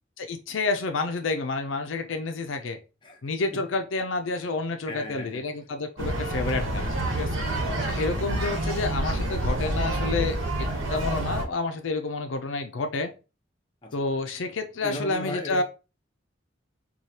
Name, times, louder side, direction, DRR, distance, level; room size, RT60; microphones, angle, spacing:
voice 1, 0.2-2.8 3.2-6.9 7.1-7.4 7.9-13.1 13.9-15.6, left 3 dB, 75° left, 0.5 m, -29 dB
voice 2, 4.9-5.4 7.3-7.8 13.8-14.0 14.8-15.6, left 1 dB, 25° left, 0.7 m, -37 dB
sound 1, 6.0-11.4, right 1 dB, 90° right, 1.3 m, -28 dB
4.8 x 2.3 x 2.8 m
head